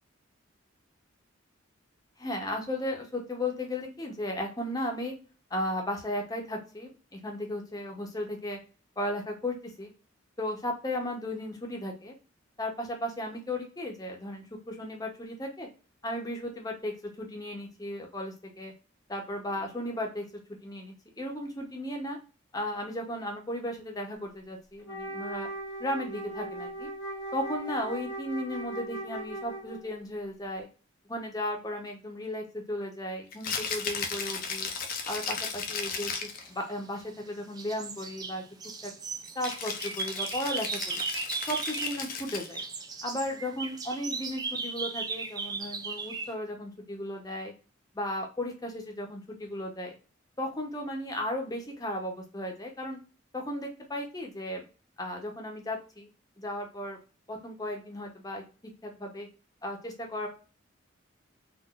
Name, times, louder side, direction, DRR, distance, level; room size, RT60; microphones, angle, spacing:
voice 1, 2.2-5.1 5.5-8.6 9.0-9.9 10.4-12.1 12.6-15.7 16.0-18.7 19.1-20.3 20.6-22.2 22.5-25.5 25.8-26.9 27.3-30.7 31.1-34.7 35.1-38.4 38.8-38.9 39.3-41.0 41.5-42.6 43.0-47.5 47.9-49.9 50.4-53.0 53.3-54.6 55.0-56.1 56.4-57.0 57.3-58.4 58.8-59.3 59.6-60.3, left 1 dB, 20° left, 1 dB, 0.7 m, -35 dB
Wind instrument woodwind instrument, 24.8-30.0, right 1 dB, 85° left, 1.3 m, -38 dB
Rattle (instrument), 33.3-36.5 39.4-42.7, left 5 dB, 45° left, 0.5 m, -35 dB
sound 1, 36.4-37.2 37.6-42.1 42.3-46.3, right 4 dB, 20° right, 0.4 m, -37 dB
3.8 x 2.5 x 2.4 m, 0.35 s
head